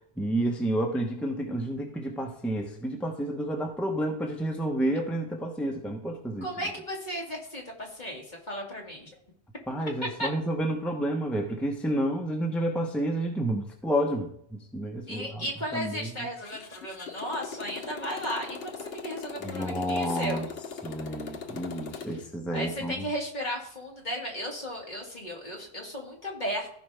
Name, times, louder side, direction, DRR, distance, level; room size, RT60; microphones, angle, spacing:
voice 1, 0.2-6.5 9.7-15.5 15.7-16.3 19.4-20.5 20.8-23.0, right 1 dB, ahead, 1 dB, 1.0 m, -30 dB
voice 2, 6.4-9.1 10.2-10.3 15.1-20.5 22.5-26.7, equal, 40° left, -2 dB, 2.4 m, -35 dB
Motorcycle, 16.4-22.3, left 5 dB, 60° left, 1.2 m, -40 dB
15.5 x 5.1 x 3.5 m, 0.69 s
omnidirectional pair, 1.1 m